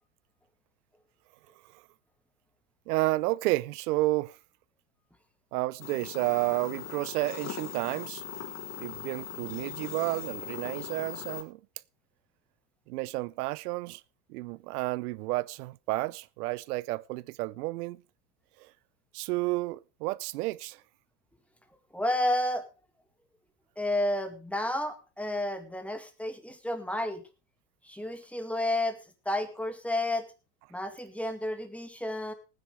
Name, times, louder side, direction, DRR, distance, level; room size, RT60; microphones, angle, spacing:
voice 1, 2.9-4.4 5.5-8.2 8.8-11.6 12.9-14.0 14.3-18.0 18.6-18.7 19.1-20.8, right 20 dB, 65° right, 0.7 m, -31 dB
sound 1, 5.8-11.4, left 8 dB, 30° left, 3.9 m, -40 dB
voice 2, 21.9-22.7 23.8-27.2 27.8-29.0 29.3-30.3 30.7-32.3, left 1 dB, 5° left, 2.1 m, -31 dB
19.5 x 9.7 x 3.3 m
supercardioid pair, 120°, 49 cm